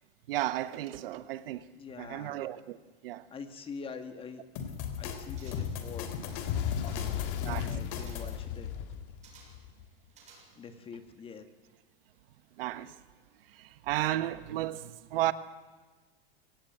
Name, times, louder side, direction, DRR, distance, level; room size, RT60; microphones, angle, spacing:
voice 1, 0.3-1.7 2.0-2.8 3.0-3.2 7.4-7.8 12.6-12.9 13.6-15.3, right 14 dB, 70° right, 1.3 m, -33 dB
voice 2, 1.8-2.5 3.3-4.5 5.0-6.2 6.9-8.7 10.6-11.5, left 5 dB, 20° left, 1.7 m, -45 dB
sound 1, 4.6-8.4, left 6 dB, 50° left, 3.4 m, -38 dB
Fire, 5.3-9.9, left 10 dB, 65° left, 2.5 m, -36 dB
sound 2, 5.4-5.9 6.5-7.3 8.0-8.4 9.2-9.7 10.1-10.8 11.1-11.2, right 4 dB, 25° right, 6.7 m, -57 dB
24.0 x 17.5 x 9.3 m
supercardioid pair, 155°, 29 cm